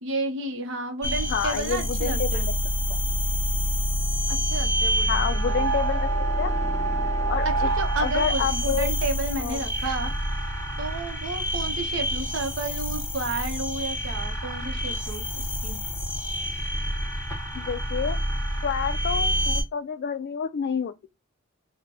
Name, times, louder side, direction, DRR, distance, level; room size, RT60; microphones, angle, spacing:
voice 1, 0.0-2.5 4.3-5.7 7.4-10.1 10.8-15.8, right 3 dB, 60° right, 0.8 m, -32 dB
sound 1, 1.0-19.6, equal, 10° left, 1.0 m, -27 dB
voice 2, 1.3-2.4 2.9-3.0 5.1-6.1 6.4-6.6 7.3-7.7 8.0-8.9 9.4-9.6 17.5-18.2 18.6-21.1, left 7 dB, 50° left, 0.3 m, -28 dB
3.2 x 2.2 x 3.8 m
head